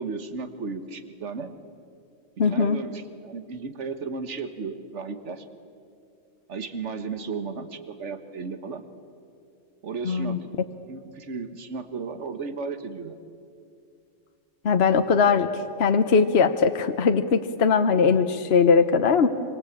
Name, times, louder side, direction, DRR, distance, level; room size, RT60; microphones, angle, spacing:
voice 1, 0.0-1.5 2.5-5.5 6.5-8.8 9.8-10.4 10.9-13.2, right 4 dB, 65° right, 9 dB, 1.7 m, -34 dB
voice 2, 2.4-2.8 10.0-10.4 14.6-15.5 15.8-19.3, left 5 dB, 55° left, 8 dB, 1.1 m, -20 dB
25.0 x 25.0 x 8.6 m, 2.4 s
omnidirectional pair, 1.3 m